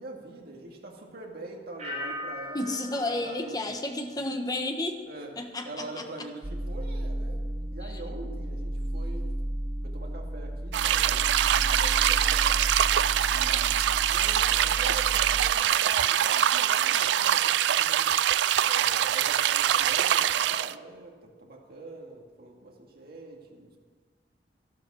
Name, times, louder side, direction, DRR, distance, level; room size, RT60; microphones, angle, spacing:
voice 1, 0.0-3.7 4.1-4.2 5.1-5.3 5.6-7.4 7.7-9.4 9.8-12.6 13.3-18.2 18.6-23.8, right 2 dB, 60° right, 0 dB, 2.3 m, -44 dB
sound 1, 1.8-4.6 4.9-5.4, left 1 dB, 40° right, 5.0 m, -41 dB
voice 2, 2.5-5.0 5.4-6.3 7.8-8.0, left 2 dB, 20° left, 4 dB, 1.3 m, -32 dB
sound 2, 6.4-15.5, right 1 dB, 15° right, 0.4 m, -33 dB
sound 3, 10.7-20.7, right 11 dB, 80° right, 0.3 m, -24 dB
12.5 x 12.0 x 6.4 m, 1.5 s
head